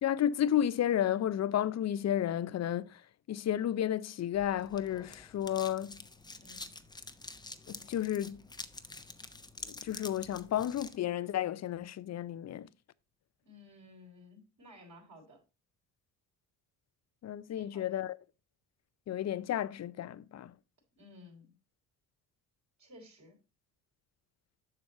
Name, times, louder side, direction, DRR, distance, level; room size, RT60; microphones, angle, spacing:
voice 1, 0.0-3.0 3.3-6.0 7.7-8.4 9.6-12.7 17.2-18.2 19.1-20.5, left 11 dB, 40° left, 0.6 m, -32 dB
sound 1, 4.3-11.0, left 2 dB, 10° left, 0.9 m, -48 dB
voice 2, 13.4-15.4 17.5-18.0 21.0-21.5 22.8-23.4, left 1 dB, 45° right, 4.2 m, -55 dB
7.3 x 6.2 x 4.2 m
supercardioid pair, 65°, 40 cm